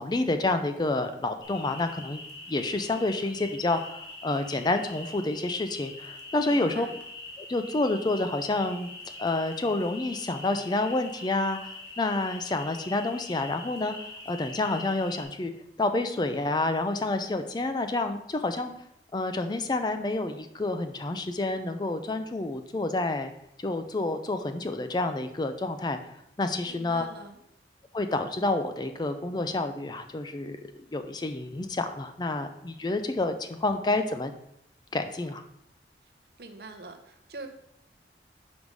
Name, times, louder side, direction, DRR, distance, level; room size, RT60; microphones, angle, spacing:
voice 1, 0.0-2.2 2.5-6.9 7.4-8.9 9.2-13.9 14.3-15.5 15.8-18.7 19.1-23.3 23.6-26.0 26.4-27.0 27.9-30.6 30.9-34.3 34.9-35.4, left 2 dB, 25° left, 8 dB, 0.4 m, -29 dB
sound 1, 1.4-15.2, left 3 dB, 75° left, 1.3 m, -43 dB
voice 2, 6.4-6.9 26.7-27.4 36.4-37.5, right 3 dB, 60° right, 6 dB, 0.8 m, -43 dB
5.2 x 4.7 x 5.3 m, 0.78 s
head